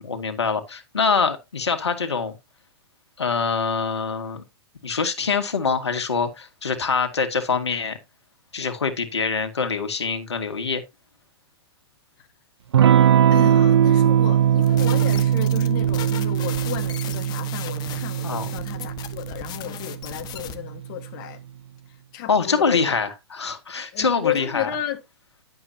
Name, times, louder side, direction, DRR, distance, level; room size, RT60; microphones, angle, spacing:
voice 1, 0.0-2.4 3.2-4.4 4.8-8.0 8.5-10.8 18.2-18.5 22.3-24.7, left 5 dB, 90° left, 2.1 m, -24 dB
Electric guitar / Strum, 12.7-21.0, right 10 dB, 80° right, 0.7 m, -20 dB
voice 2, 13.3-21.4 22.1-23.0 23.9-25.0, left 11 dB, 50° left, 1.6 m, -33 dB
sound 1, 14.6-20.6, left 10 dB, 30° left, 1.3 m, -38 dB
11.5 x 7.7 x 2.8 m
hypercardioid pair, 120°, 14 cm